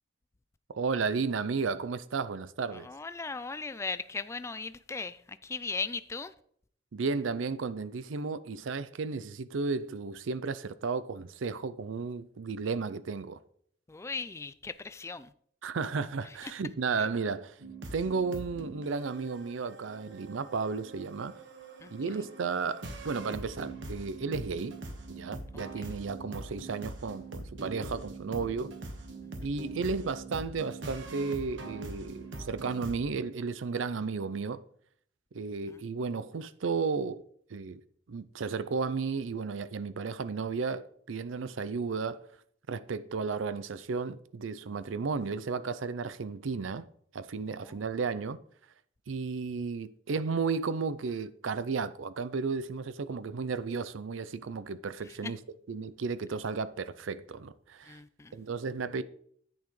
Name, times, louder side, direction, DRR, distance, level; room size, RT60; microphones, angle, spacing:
voice 1, 0.7-2.9 6.9-13.4 15.6-17.6 17.9-21.3 21.9-24.8 25.1-28.7 29.4-34.6 35.3-37.2 37.5-37.8 38.1-42.2 42.7-46.9 47.1-48.4 49.1-55.4 55.7-58.0 58.3-59.0, right 4 dB, 90° right, 0.5 m, -33 dB
voice 2, 2.7-6.3 13.9-15.3 16.4-16.5 17.0-17.1 21.8-21.9 25.8-26.0 29.2-29.3 35.7-35.8 47.6-47.8 55.2-55.3 57.9-58.3, left 4 dB, 15° left, 0.3 m, -38 dB
sound 1, 17.6-33.0, right 2 dB, 70° right, 1.4 m, -43 dB
10.5 x 8.7 x 3.2 m
head